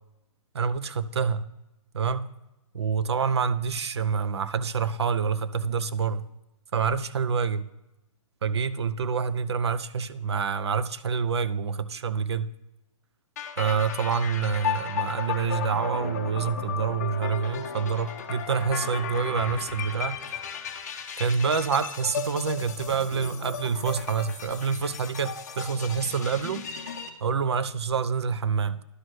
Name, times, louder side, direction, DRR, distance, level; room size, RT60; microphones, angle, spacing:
voice 1, 0.5-1.5 1.9-2.3 2.7-6.2 6.7-7.7 8.4-12.5 13.6-20.2 21.2-26.6 27.2-28.8, right 6 dB, 50° right, 0.5 m, -27 dB
sound 1, 13.4-27.1, left 7 dB, 30° left, 0.6 m, -35 dB
11.0 x 6.2 x 3.1 m
hypercardioid pair, 180°, 18 cm